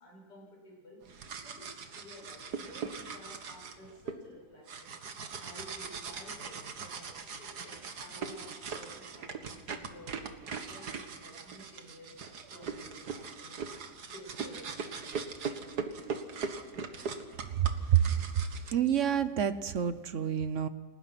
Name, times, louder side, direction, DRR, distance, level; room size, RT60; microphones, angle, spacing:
voice 1, 0.0-5.0 5.4-13.6 14.0-15.2, equal, 85° left, -2 dB, 7.8 m, -53 dB
sound 1, 1.0-4.1 4.7-18.7, right 5 dB, 70° right, 2.1 m, -40 dB
voice 2, 17.5-18.3 18.7-20.7, right 9 dB, 55° right, 13 dB, 1.1 m, -28 dB
29.5 x 19.0 x 6.0 m, 1.3 s
omnidirectional pair, 1.8 m